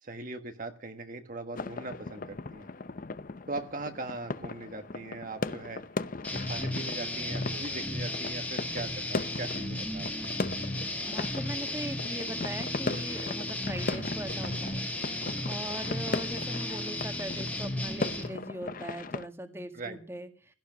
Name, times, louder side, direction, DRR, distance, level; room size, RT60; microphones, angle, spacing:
voice 1, 0.0-2.7 3.5-5.8 6.3-10.1 10.4-10.7 19.7-20.0, right 2 dB, 45° right, 6 dB, 1.4 m, -40 dB
sound 1, 1.6-19.3, left 3 dB, 45° left, 0.7 m, -38 dB
sound 2, 6.2-18.3, left 1 dB, 10° left, 1.9 m, -34 dB
voice 2, 11.0-14.8 15.4-20.5, right 1 dB, 15° right, 7 dB, 1.8 m, -40 dB
16.5 x 11.5 x 6.1 m, 0.43 s
head